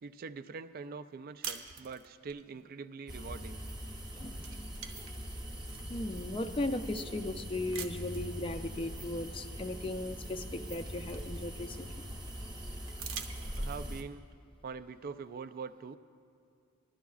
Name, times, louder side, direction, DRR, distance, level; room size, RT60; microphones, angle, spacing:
voice 1, 0.0-3.6 13.6-14.2 14.6-16.0, right 5 dB, 40° right, 11 dB, 0.3 m, -43 dB
sound 1, 1.4-2.4 3.8-4.0 4.3-6.0 6.6-6.7 7.7-8.3 9.8-9.9 10.3-11.8 12.9-14.0, right 7 dB, 65° right, 0.7 m, -45 dB
sound 2, 3.1-14.0, equal, 20° right, 0.8 m, -42 dB
voice 2, 4.1-5.0 5.9-11.9, left 2 dB, 25° left, 8 dB, 0.4 m, -37 dB
19.5 x 12.5 x 2.4 m, 2.4 s
head